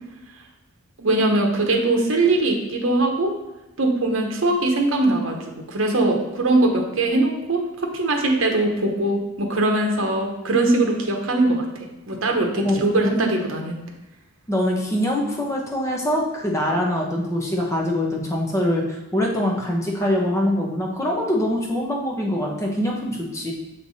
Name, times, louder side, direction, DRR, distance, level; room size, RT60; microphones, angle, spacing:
voice 1, 1.0-3.3 3.8-5.4 5.7-7.6 7.9-11.6 12.1-13.7, right 2 dB, 65° right, 2 dB, 0.9 m, -21 dB
voice 2, 12.6-13.2 14.5-23.5, left 1 dB, 15° left, -2 dB, 0.9 m, -24 dB
7.0 x 3.3 x 4.0 m, 1.0 s
head